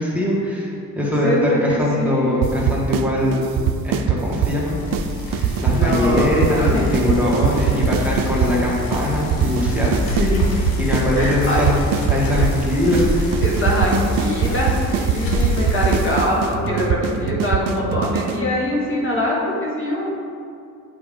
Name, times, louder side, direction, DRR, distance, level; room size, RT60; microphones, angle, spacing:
voice 1, 0.0-3.5 3.8-4.8 5.3-10.2 10.8-11.8 12.1-13.3, left 1 dB, 5° right, -6 dB, 1.5 m, -21 dB
voice 2, 1.2-2.5 5.7-6.9 8.5-8.7 10.1-10.5 11.2-11.6 13.4-20.2, left 1 dB, 35° left, -4 dB, 1.4 m, -23 dB
sound 1, 2.4-3.1 3.3-4.6 4.9-5.1 5.3-8.5 8.9-9.0 9.3-11.1 11.3-12.6 12.9-13.0 13.3-18.4, right 9 dB, 80° right, 0.5 m, -21 dB
Bicycle, 4.6-16.3, left 1 dB, 85° left, 1.1 m, -26 dB
7.9 x 4.9 x 3.7 m, 2.5 s
cardioid pair, 95°, 34 cm